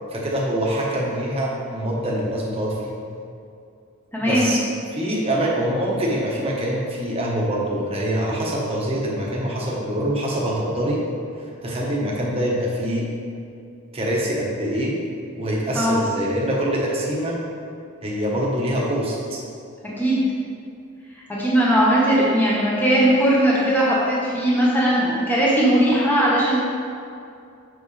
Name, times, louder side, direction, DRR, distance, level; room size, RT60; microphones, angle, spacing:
voice 1, 0.1-2.9 4.2-4.6 4.9-11.0 11.4-13.1 13.9-14.9 15.3-17.4 18.0-19.4, equal, 30° right, -4 dB, 1.3 m, -24 dB
voice 2, 4.1-4.5 15.7-16.0 20.0-20.2 21.4-26.6, right 1 dB, 10° left, -7 dB, 1.3 m, -19 dB
7.3 x 6.4 x 3.3 m, 2.5 s
head